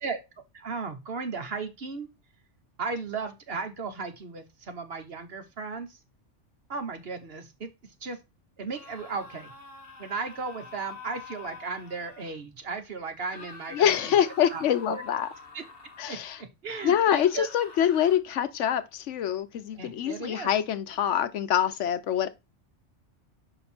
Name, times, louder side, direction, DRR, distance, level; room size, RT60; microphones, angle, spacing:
voice 1, 0.5-2.1 2.8-6.0 6.7-7.7 8.0-8.2 8.6-9.5 10.0-14.1 14.5-15.0 15.5-15.6 16.1-17.5 19.8-20.5, right 4 dB, 55° right, 1.3 m, -35 dB
sound 1, 8.7-12.4 13.2-16.2 16.6-18.2, left 4 dB, 55° left, 1.4 m, -47 dB
voice 2, 13.7-15.3 16.0-16.4 16.8-22.3, left 9 dB, 80° left, 1.0 m, -25 dB
6.0 x 5.3 x 4.3 m
omnidirectional pair, 1.2 m